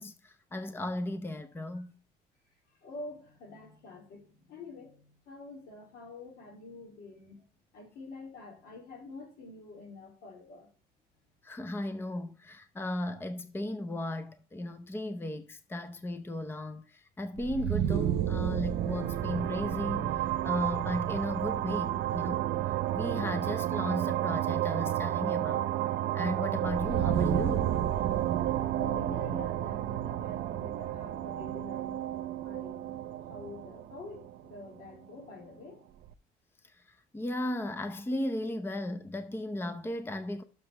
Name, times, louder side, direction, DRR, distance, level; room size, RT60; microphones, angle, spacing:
voice 1, 0.0-1.9 11.4-20.2 20.4-25.7 26.1-27.8 37.1-40.4, left 1 dB, 15° left, 0.7 m, -35 dB
voice 2, 2.8-7.4 7.7-10.7 28.7-32.0 32.4-33.0 33.3-35.8, left 2 dB, 75° left, 3.4 m, -47 dB
sound 1, 17.4-35.0, right 12 dB, 75° right, 0.7 m, -31 dB
6.6 x 5.3 x 5.9 m
cardioid pair, 110°, 17 cm